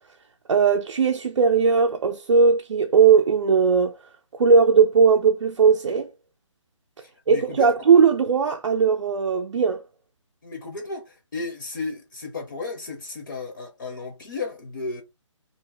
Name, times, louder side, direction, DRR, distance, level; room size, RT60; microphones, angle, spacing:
voice 1, 0.5-4.0 4.3-6.1 7.3-9.8, right 5 dB, 65° right, 0.4 m, -18 dB
voice 2, 7.0-7.9 10.4-15.0, left 3 dB, 40° left, 0.6 m, -34 dB
2.5 x 2.0 x 3.2 m
hypercardioid pair, 175°, 16 cm